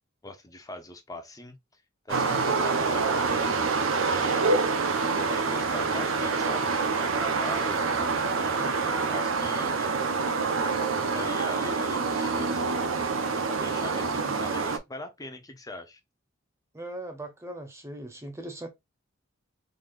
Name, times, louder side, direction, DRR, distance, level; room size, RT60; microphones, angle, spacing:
voice 1, 0.2-3.5 4.0-4.5 5.1-10.0 10.5-12.7 13.5-16.0, left 1 dB, 20° left, 0.7 m, -41 dB
sound 1, 2.1-14.8, right 4 dB, 75° right, 0.7 m, -26 dB
voice 2, 16.7-18.7, right 1 dB, 15° right, 0.7 m, -39 dB
3.9 x 3.3 x 2.5 m
head